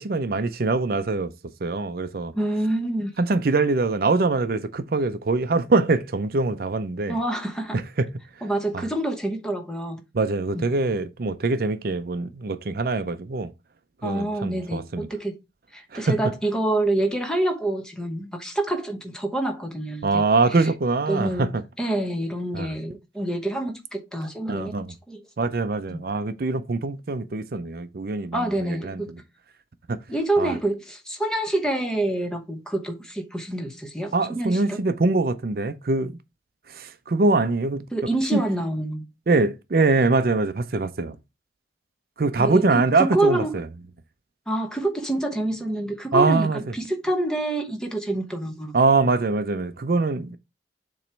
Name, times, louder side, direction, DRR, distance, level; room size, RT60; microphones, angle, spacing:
voice 1, 0.0-1.3 1.6-2.3 3.2-7.2 8.0-8.1 8.7-8.8 10.1-13.5 14.0-15.1 15.9-16.2 20.0-21.6 22.5-22.7 24.5-24.9 25.4-29.0 29.9-30.0 30.4-30.5 34.1-36.1 36.7-37.8 38.3-38.4 39.3-41.2 42.2-43.4 46.1-46.6 48.7-50.4, right 3 dB, 50° right, 0.5 m, -23 dB
voice 2, 2.3-3.1 7.1-7.8 8.4-10.0 10.5-10.7 14.0-15.4 15.7-20.2 20.5-20.7 21.1-24.8 25.1-25.2 25.9-26.0 28.3-29.1 30.1-34.8 37.9-39.0 42.4-43.6 44.5-48.8, right 1 dB, 5° left, 1.0 m, -27 dB
7.1 x 3.0 x 4.4 m
head